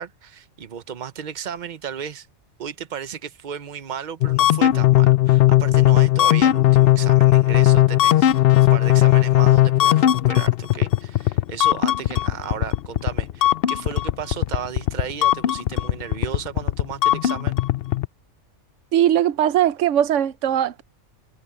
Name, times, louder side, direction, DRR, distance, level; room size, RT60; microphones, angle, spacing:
voice 1, 0.0-2.3 2.6-17.6, right 8 dB, 45° right, 1.0 m, -34 dB
sound 1, 4.2-18.1, left 14 dB, 60° left, 0.7 m, -17 dB
voice 2, 18.9-20.8, right 11 dB, 85° right, 1.0 m, -19 dB
omnidirectional pair, 1.2 m